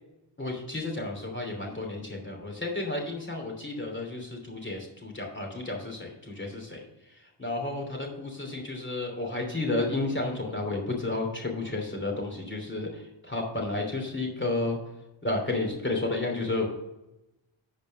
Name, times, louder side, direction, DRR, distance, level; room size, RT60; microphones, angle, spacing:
voice 1, 0.4-6.8 7.4-14.8 15.2-16.7, left 2 dB, 20° left, 1 dB, 2.9 m, -32 dB
7.5 x 5.1 x 6.5 m, 0.92 s
cardioid pair, 40°, 50 cm